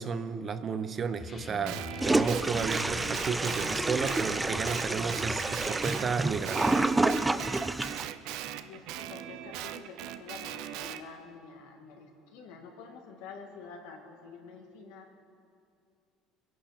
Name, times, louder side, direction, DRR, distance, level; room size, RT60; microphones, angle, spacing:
voice 1, 0.0-7.0, right 5 dB, 30° right, 11 dB, 0.7 m, -33 dB
sound 1, 1.2-6.4, left 3 dB, 20° left, 1.0 m, -45 dB
Guitar, 1.6-6.1 6.4-11.0, right 12 dB, 70° right, 0.6 m, -40 dB
Toilet flush, 2.0-8.1, right 2 dB, 10° right, 0.4 m, -29 dB
voice 2, 8.6-15.1, left 5 dB, 85° left, 1 dB, 2.3 m, -48 dB
23.5 x 11.0 x 4.4 m, 2.4 s
cardioid pair, 130°, 0 cm